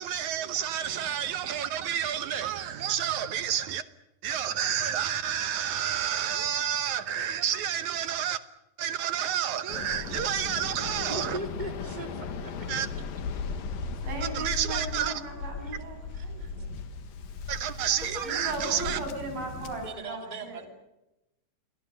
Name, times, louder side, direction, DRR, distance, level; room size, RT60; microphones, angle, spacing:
voice 1, 0.0-3.8 4.2-8.4 8.8-11.4 12.7-12.9 14.2-15.2 17.5-19.0, right 9 dB, 65° right, 2.2 m, -30 dB
Waves surf, 9.7-19.9, left 4 dB, 75° left, 3.5 m, -37 dB
voice 2, 11.1-12.7 15.6-15.8 16.1-16.5 18.0-18.3 19.8-20.6, right 2 dB, 15° right, 2.8 m, -39 dB
voice 3, 14.0-16.7 18.2-20.6, right 2 dB, 85° right, 9.5 m, -37 dB
28.5 x 23.5 x 6.7 m
omnidirectional pair, 4.0 m